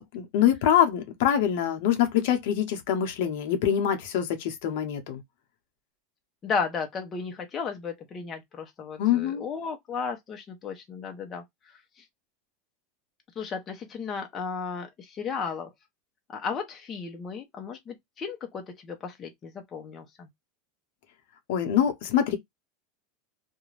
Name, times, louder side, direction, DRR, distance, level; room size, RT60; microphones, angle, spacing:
voice 1, 0.0-5.2 9.0-9.4 21.5-22.4, left 10 dB, 65° left, 0.8 m, -24 dB
voice 2, 6.4-11.4 13.4-15.7 16.3-20.3, left 5 dB, 25° left, 0.6 m, -34 dB
2.5 x 2.2 x 3.1 m
supercardioid pair, 150°, 0 cm